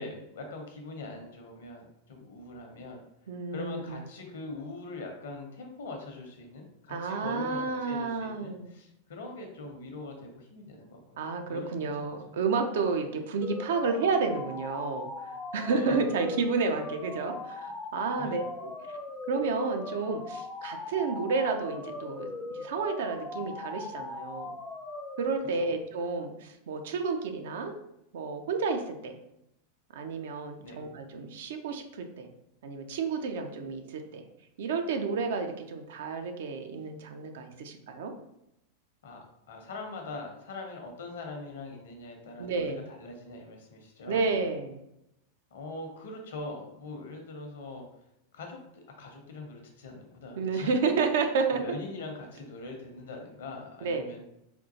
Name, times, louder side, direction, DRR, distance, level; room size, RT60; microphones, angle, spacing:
voice 1, 0.0-3.0 3.5-7.6 7.9-11.2 11.5-11.9 15.7-16.0 18.2-18.3 25.6-25.7 30.6-30.8 39.0-44.3 45.5-47.8 48.3-50.7 51.5-54.2, left 2 dB, 60° left, 3 dB, 0.8 m, -42 dB
voice 2, 3.3-4.0 6.9-8.7 11.2-18.7 19.3-24.5 25.2-27.8 28.1-29.2 29.9-32.3 32.6-34.3 34.6-38.1 42.4-42.8 44.1-44.8 50.4-51.6 53.8-54.0, right 4 dB, 55° right, 6 dB, 0.4 m, -31 dB
sound 1, 13.4-25.4, left 3 dB, 15° left, 0.4 m, -40 dB
4.3 x 2.4 x 2.7 m, 0.83 s
figure-of-eight pair, 90°, 0 cm